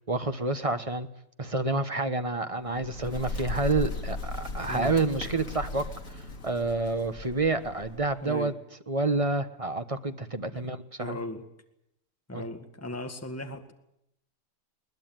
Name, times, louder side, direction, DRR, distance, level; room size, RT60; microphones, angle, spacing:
voice 1, 0.1-1.1 1.4-5.9 6.4-8.5 8.9-11.2 12.3-12.4, right 3 dB, 25° right, 9 dB, 1.2 m, -28 dB
Bird, 2.5-8.3, left 2 dB, 65° left, 2.8 m, -37 dB
voice 2, 8.2-8.5 10.5-10.7 11.0-11.4 12.3-13.7, left 2 dB, 10° left, 6 dB, 2.0 m, -37 dB
22.0 x 20.0 x 9.2 m, 0.80 s
omnidirectional pair, 1.5 m